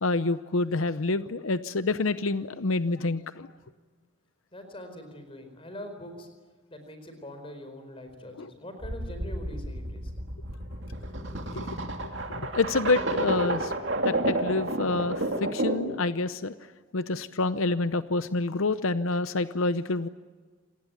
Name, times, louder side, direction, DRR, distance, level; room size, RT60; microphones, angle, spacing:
voice 1, 0.0-3.5 8.4-8.5 11.5-11.7 12.3-13.7 14.0-16.5 16.9-20.1, left 3 dB, 80° left, 12 dB, 0.8 m, -27 dB
voice 2, 4.5-6.3 6.7-10.1, left 1 dB, 25° left, 7 dB, 4.6 m, -43 dB
sound 1, 8.8-16.0, right 2 dB, 60° right, 2.6 m, -31 dB
27.5 x 19.0 x 9.3 m, 1.4 s
head